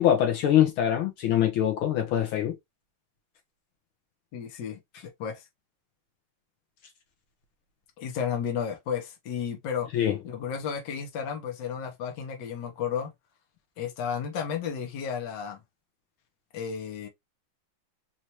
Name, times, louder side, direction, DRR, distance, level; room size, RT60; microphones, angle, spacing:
voice 1, 0.0-2.6 9.9-10.2, left 10 dB, 75° left, 1.6 m, -23 dB
voice 2, 4.3-5.4 8.0-9.9 10.2-13.1 13.8-15.6 16.5-17.1, left 7 dB, 60° left, 1.5 m, -33 dB
4.4 x 2.5 x 2.9 m
omnidirectional pair, 2.4 m